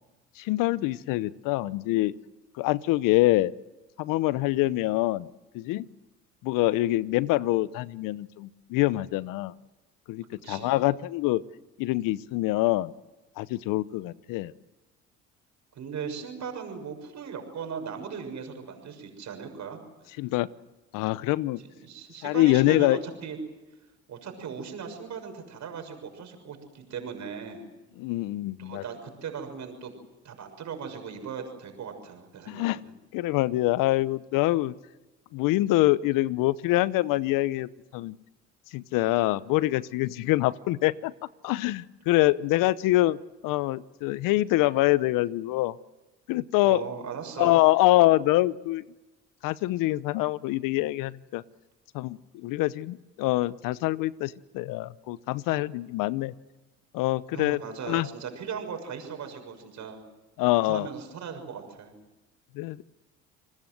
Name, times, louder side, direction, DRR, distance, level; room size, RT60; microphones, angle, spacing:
voice 1, 0.4-2.1 2.5-3.5 4.0-5.3 5.5-5.8 6.4-9.5 10.1-11.4 11.8-12.9 13.4-14.5 20.2-20.5 20.9-21.6 22.2-23.0 28.0-28.8 32.5-32.8 33.1-34.7 35.3-38.2 38.7-41.1 41.4-45.8 46.3-46.8 47.4-48.8 49.4-51.4 51.9-56.3 56.9-57.6 57.9-58.1 60.4-60.9 62.5-62.9, left 17 dB, 75° left, 18 dB, 0.9 m, -25 dB
voice 2, 10.4-10.8 15.7-19.8 21.6-23.4 24.1-27.6 28.6-29.9 30.2-32.9 46.6-47.6 57.3-60.0 60.5-61.9, right 6 dB, 55° right, 5 dB, 6.6 m, -38 dB
30.0 x 20.5 x 7.9 m, 1.1 s
supercardioid pair, 70°, 33 cm